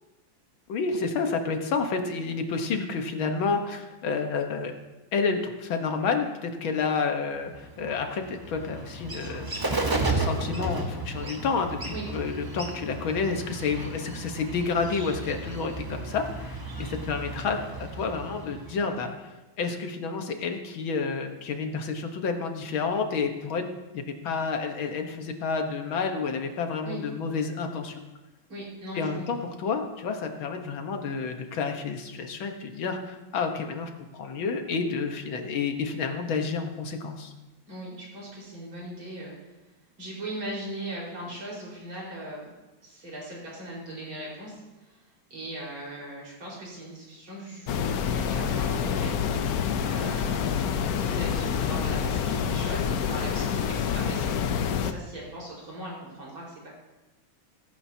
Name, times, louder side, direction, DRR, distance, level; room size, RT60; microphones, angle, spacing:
voice 1, 0.7-4.7 5.1-9.8 10.1-28.0 28.9-37.3, left 5 dB, 80° left, 5 dB, 2.0 m, -30 dB
Bird, 7.5-19.0, right 2 dB, 25° right, 0.4 m, -34 dB
voice 2, 28.5-29.3 37.7-39.3 40.0-42.5 42.8-45.0 45.3-49.2 49.9-54.4 54.7-56.7, right 1 dB, 85° right, -4 dB, 5.5 m, -39 dB
sound 1, 47.7-54.9, left 7 dB, 65° left, 1.0 m, -27 dB
16.0 x 15.0 x 2.8 m, 1.1 s
omnidirectional pair, 2.2 m